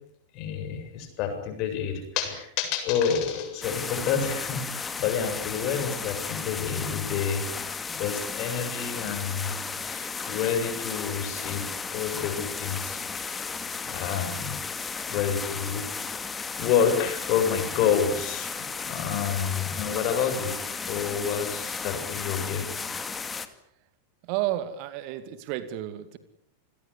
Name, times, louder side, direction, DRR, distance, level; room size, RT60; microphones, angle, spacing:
voice 1, 0.3-7.5 7.9-9.5 9.8-13.0 13.3-13.5 13.9-14.6 15.1-20.5 20.9-22.7, left 7 dB, 40° left, 7 dB, 7.6 m, -29 dB
sound 1, 3.6-23.5, left 5 dB, 15° left, 2.4 m, -34 dB
voice 2, 24.3-26.2, right 13 dB, 45° right, 12 dB, 2.3 m, -31 dB
28.5 x 21.5 x 8.4 m, 0.71 s
figure-of-eight pair, 90°, 0 cm